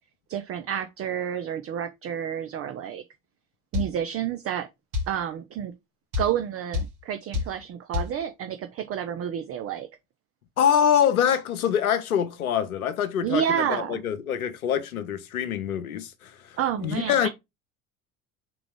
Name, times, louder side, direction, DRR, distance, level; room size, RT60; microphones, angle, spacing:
voice 1, 0.3-3.0 3.7-4.7 5.1-5.7 6.2-9.9 13.2-14.0 16.6-17.3, right 9 dB, 35° right, 0.5 m, -29 dB
sound 1, 3.7-3.9 4.9-5.1 6.1-6.3 6.7-6.9 7.3-7.5 7.9-8.1, left 5 dB, 60° right, 2.0 m, -27 dB
voice 2, 10.6-17.3, left 9 dB, 90° left, 0.6 m, -25 dB
3.7 x 3.1 x 4.7 m
hypercardioid pair, 65°, 42 cm